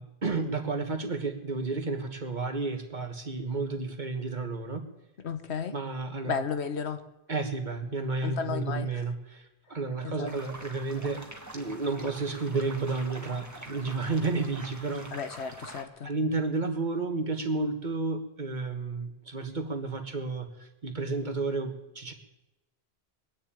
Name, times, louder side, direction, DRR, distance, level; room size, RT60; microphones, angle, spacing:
voice 1, 0.0-4.9 5.7-6.4 7.3-9.4 9.7-11.3 11.5-15.1 16.0-22.1, right 3 dB, 45° right, 5 dB, 1.6 m, -31 dB
voice 2, 5.2-5.7 6.2-7.0 8.2-9.0 10.0-10.3 15.1-16.1, left 6 dB, 80° left, 10 dB, 1.3 m, -33 dB
sound 1, 10.3-15.8, right 1 dB, 15° right, 1.7 m, -45 dB
21.0 x 7.3 x 8.8 m, 0.95 s
omnidirectional pair, 1.1 m